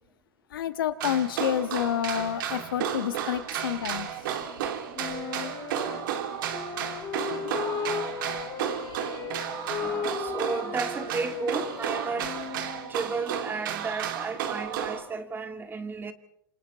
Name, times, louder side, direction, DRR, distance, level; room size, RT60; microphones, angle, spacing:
voice 1, 0.5-4.1, left 10 dB, 80° left, 1.5 m, -29 dB
sound 1, 1.0-15.0, right 9 dB, 70° right, 3.1 m, -33 dB
Wind instrument woodwind instrument, 4.9-12.9, left 8 dB, 40° left, 5.1 m, -36 dB
voice 2, 9.8-12.3 12.9-16.1, right 4 dB, 20° right, 2.0 m, -33 dB
27.5 x 27.0 x 4.2 m
hypercardioid pair, 115°, 11 cm